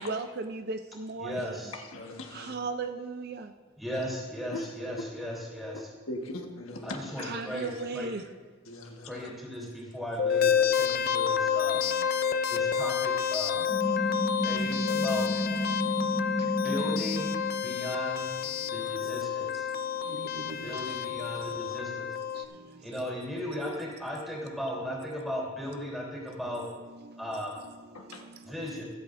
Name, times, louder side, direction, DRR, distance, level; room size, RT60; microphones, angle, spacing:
voice 1, 0.0-1.6 2.3-3.5 7.2-8.3 11.8-12.1 13.8-14.6 14.9-16.6 18.4-19.2 19.4-21.1 21.4-21.5 22.3-22.9 23.6-23.7 24.4-24.5 26.5-28.6, right 3 dB, 50° right, 7 dB, 0.5 m, -40 dB
voice 2, 1.2-1.7 3.8-5.8 6.8-8.1 9.0-11.8 12.5-13.7 14.4-15.3 16.6-17.3 17.6-18.3 18.7-19.7 20.6-22.1 22.8-26.7 27.2-27.6 28.5-28.9, equal, ahead, -4 dB, 3.4 m, -36 dB
voice 3, 1.7-2.6 4.5-4.7 5.7-5.8 6.1-7.7 8.6-9.3 10.9-11.0 13.9-14.1 15.5-15.7 27.9-28.3, left 2 dB, 85° left, 2 dB, 1.4 m, -40 dB
sound 1, 10.2-22.5, left 8 dB, 45° left, 0.5 m, -29 dB
sound 2, 13.7-17.6, equal, 65° left, 2.8 m, -31 dB
24.5 x 8.2 x 2.6 m, 1.4 s
head